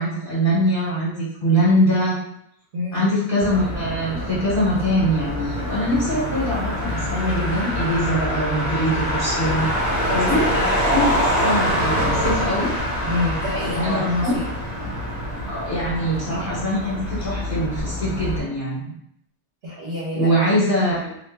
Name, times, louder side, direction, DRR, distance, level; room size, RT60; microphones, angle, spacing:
voice 1, 0.0-2.2 2.9-9.7 10.1-11.1 11.4-12.7 13.7-14.3 15.4-18.9 20.1-21.2, equal, 50° left, -9 dB, 1.1 m, -23 dB
voice 2, 2.7-3.1 10.1-10.3 13.0-14.4 19.6-20.6, left 2 dB, 60° right, -8 dB, 1.1 m, -27 dB
Motor vehicle (road), 3.4-18.4, equal, 30° left, 1.0 m, -25 dB
2.7 x 2.6 x 3.3 m, 0.72 s
omnidirectional pair, 1.2 m